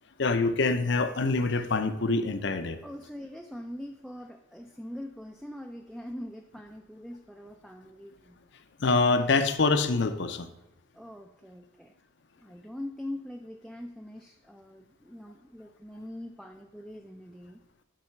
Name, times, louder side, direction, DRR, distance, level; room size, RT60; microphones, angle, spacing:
voice 1, 0.2-2.8 8.8-10.5, left 3 dB, 65° left, 10 dB, 0.6 m, -25 dB
voice 2, 2.8-8.4 10.9-11.9 12.4-17.6, left 1 dB, ahead, 2 dB, 0.3 m, -42 dB
7.6 x 4.8 x 5.4 m, 0.96 s
head